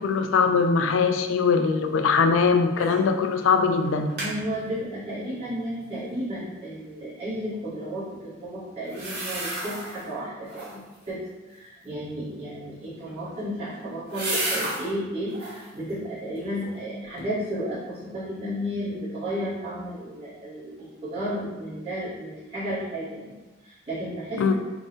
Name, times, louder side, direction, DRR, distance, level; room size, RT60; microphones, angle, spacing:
voice 1, 0.0-4.1 24.4-24.5, left 5 dB, 85° left, 7 dB, 0.3 m, -21 dB
sound 1, 2.8-3.1 3.4-3.5 3.8-4.3 8.8-10.1 10.4-11.0 12.9-14.9 15.3-15.7 16.2-16.8 17.2-17.3, right 2 dB, 55° right, 1.0 m, -33 dB
voice 2, 4.2-23.3 23.6-24.5, equal, 30° right, -13 dB, 1.1 m, -33 dB
3.7 x 2.0 x 3.9 m, 1.2 s
head